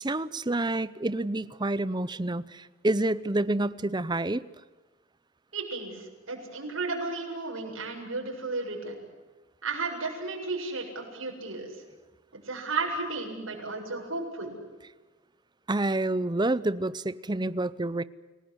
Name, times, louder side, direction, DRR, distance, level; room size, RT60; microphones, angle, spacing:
voice 1, 0.0-4.4 15.7-18.0, right 2 dB, 20° right, 17 dB, 0.7 m, -28 dB
voice 2, 5.5-9.0 9.6-11.7 12.4-14.5, right 3 dB, 90° right, 1 dB, 7.5 m, -33 dB
30.0 x 18.0 x 8.1 m, 1.3 s
head